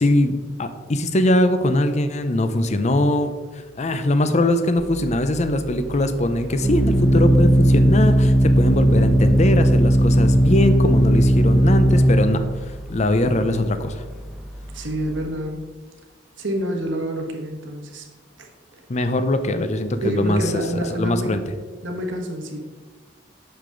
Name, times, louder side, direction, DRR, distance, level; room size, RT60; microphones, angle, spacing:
voice 1, 0.0-3.3 3.8-12.4 12.9-14.0 18.9-20.6 20.9-21.4, left 1 dB, 35° left, 10 dB, 0.6 m, -21 dB
Organ, 4.8-15.3, equal, ahead, 0.9 m, -18 dB
voice 2, 14.7-15.6 16.4-18.1 18.7-18.8 20.0-21.4 21.8-22.6, equal, 75° right, 2 dB, 1.4 m, -27 dB
8.0 x 6.7 x 3.9 m, 1.3 s
head